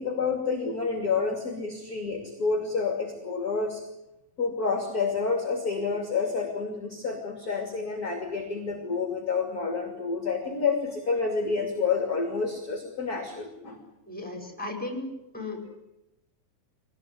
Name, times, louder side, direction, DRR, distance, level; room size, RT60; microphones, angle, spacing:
voice 1, 0.0-3.8 4.4-13.8, left 4 dB, 30° left, 4 dB, 2.8 m, -29 dB
voice 2, 14.1-15.8, left 2 dB, ahead, 3 dB, 5.2 m, -36 dB
23.0 x 19.0 x 9.5 m, 0.90 s
omnidirectional pair, 4.1 m